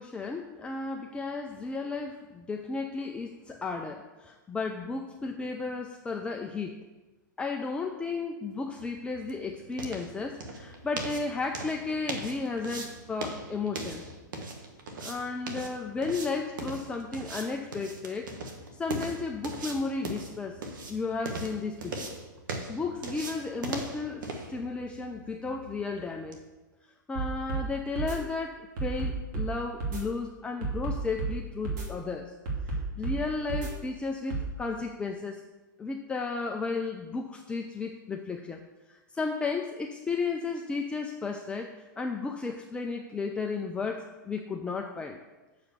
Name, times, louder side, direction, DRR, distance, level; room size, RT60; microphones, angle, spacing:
voice 1, 0.0-6.8 7.4-14.1 15.0-18.3 18.7-20.6 20.9-22.1 22.7-26.4 27.1-32.3 32.6-35.4 35.8-38.6 38.9-45.2, left 4 dB, 10° left, 3 dB, 0.5 m, -34 dB
sound 1, 8.6-26.4, right 2 dB, 75° right, 1.3 m, -40 dB
sound 2, 27.2-27.7 28.0-28.2 28.8-29.5 29.8-30.0 30.6-31.3 31.7-31.9 32.5-33.2 33.5-33.7 34.3-34.5, right 4 dB, 60° right, 2.8 m, -31 dB
7.0 x 4.9 x 6.9 m, 1.1 s
hypercardioid pair, 125°, 11 cm